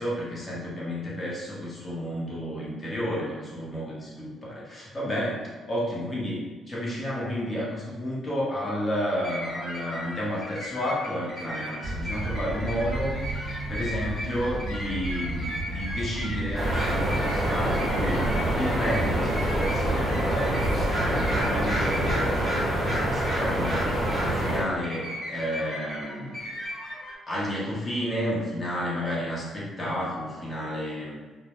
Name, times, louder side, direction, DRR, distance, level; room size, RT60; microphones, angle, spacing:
voice 1, 0.0-26.4 27.3-31.2, equal, 30° left, -6 dB, 0.8 m, -31 dB
sound 1, 9.1-27.1, equal, 50° left, 1.1 m, -38 dB
sound 2, 11.8-22.4, right 2 dB, 45° right, 0.7 m, -33 dB
sound 3, 16.5-24.6, right 1 dB, 20° right, 0.9 m, -26 dB
2.1 x 2.1 x 2.9 m, 1.3 s
cardioid pair, 90°, 0 cm